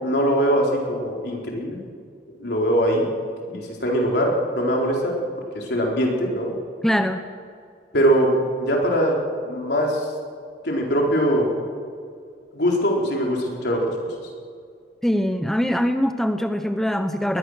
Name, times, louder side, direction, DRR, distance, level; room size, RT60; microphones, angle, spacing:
voice 1, 0.0-1.8 2.4-3.1 3.5-5.2 5.5-6.6 7.9-9.2 9.4-10.1 10.6-11.5 12.5-13.8, equal, 65° left, -1 dB, 4.2 m, -22 dB
voice 2, 6.8-7.3 15.0-17.4, equal, ahead, 7 dB, 0.8 m, -22 dB
21.0 x 20.5 x 6.5 m, 2.3 s
head